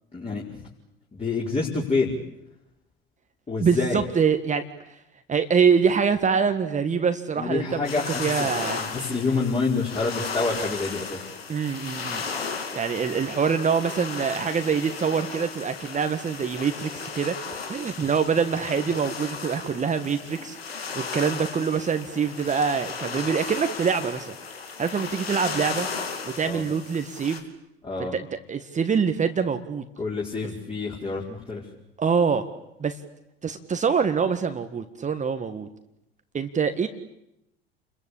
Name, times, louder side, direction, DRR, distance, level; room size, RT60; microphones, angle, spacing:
voice 1, 0.1-0.6 1.1-2.1 3.5-4.1 7.4-11.2 26.4-26.7 27.8-28.2 30.0-31.7, left 4 dB, 20° left, -3 dB, 5.5 m, -27 dB
voice 2, 3.6-4.6 5.3-7.9 8.2-8.9 11.5-12.2 12.7-20.6 21.0-24.3 24.8-25.9 26.4-27.4 28.1-28.2 28.5-29.8 32.0-32.5 32.8-33.0 33.4-35.7 36.3-36.9, right 6 dB, 25° right, 8 dB, 1.8 m, -25 dB
sound 1, 7.8-27.4, left 5 dB, 80° left, 2.7 m, -35 dB
29.5 x 22.5 x 8.7 m, 0.85 s
figure-of-eight pair, 70°, 30 cm